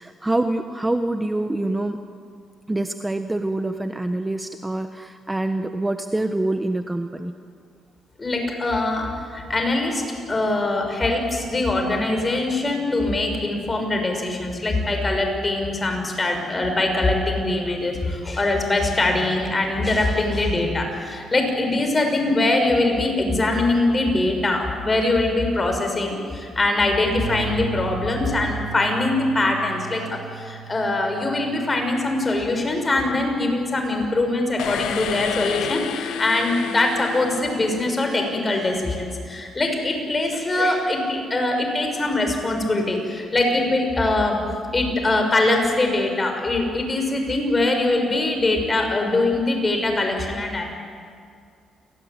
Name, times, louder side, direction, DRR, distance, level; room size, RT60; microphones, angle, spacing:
voice 1, 0.0-2.0 2.7-7.3, right 2 dB, 15° right, 7 dB, 1.2 m, -25 dB
voice 2, 8.2-10.0 10.3-44.4 44.7-50.7, left 2 dB, 25° left, 4 dB, 6.5 m, -22 dB
sound 1, 27.1-34.2, right 16 dB, 80° right, 3.8 m, -38 dB
sound 2, 34.6-38.4, left 9 dB, 80° left, 1.2 m, -31 dB
29.5 x 19.5 x 9.7 m, 2.2 s
cardioid pair, 90°, 0 cm